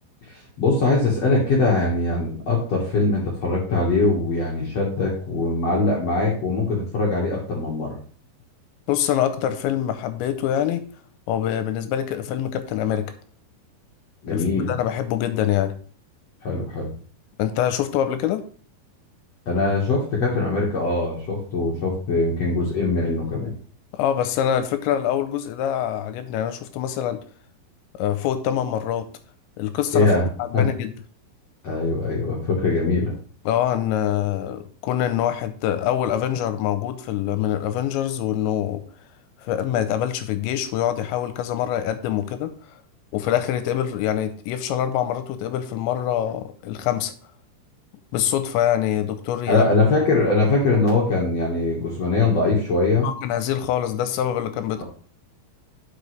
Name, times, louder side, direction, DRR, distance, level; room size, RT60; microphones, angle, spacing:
voice 1, 0.3-8.0 14.2-14.7 16.4-16.9 19.4-23.5 29.9-30.2 30.5-30.6 31.6-33.1 49.5-53.1, left 3 dB, 65° left, -3 dB, 1.6 m, -22 dB
voice 2, 8.9-10.8 11.3-13.1 14.3-15.7 17.4-18.4 23.9-27.2 27.9-29.1 29.6-30.1 30.4-30.9 33.5-38.8 39.4-42.5 43.1-47.1 48.1-49.9 53.0-54.8, left 10 dB, 85° left, 10 dB, 2.9 m, -24 dB
10.5 x 6.1 x 3.3 m, 0.43 s
omnidirectional pair, 5.4 m